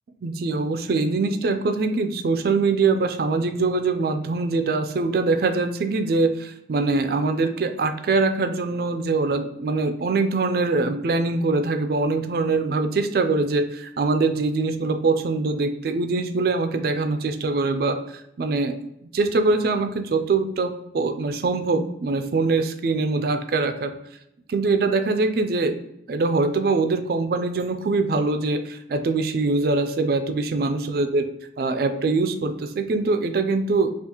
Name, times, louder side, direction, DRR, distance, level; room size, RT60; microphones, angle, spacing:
voice 1, 0.2-18.8 19.0-23.9 24.5-25.8 26.1-31.3 31.6-33.9, right 3 dB, 55° right, 7 dB, 0.3 m, -23 dB
5.6 x 2.4 x 2.9 m, 0.82 s
head